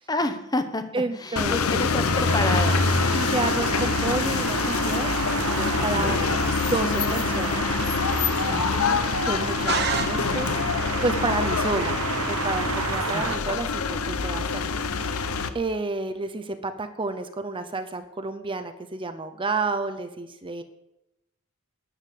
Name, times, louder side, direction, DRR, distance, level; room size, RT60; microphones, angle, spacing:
voice 1, 0.1-2.9 5.8-6.2 8.4-9.2 13.1-13.3, left 2 dB, 20° left, 9 dB, 0.9 m, -29 dB
voice 2, 0.9-2.1 3.1-5.2 5.6-6.2 6.6-7.7 9.2-12.0 12.3-20.6, right 3 dB, 25° right, 8 dB, 0.7 m, -30 dB
sound 1, 1.4-15.5, left 4 dB, 85° left, 0.9 m, -25 dB
sound 2, 2.3-13.4, right 5 dB, 80° right, 0.9 m, -31 dB
sound 3, 9.7-10.8, right 6 dB, 50° right, 1.0 m, -28 dB
9.9 x 9.5 x 7.6 m, 0.90 s
head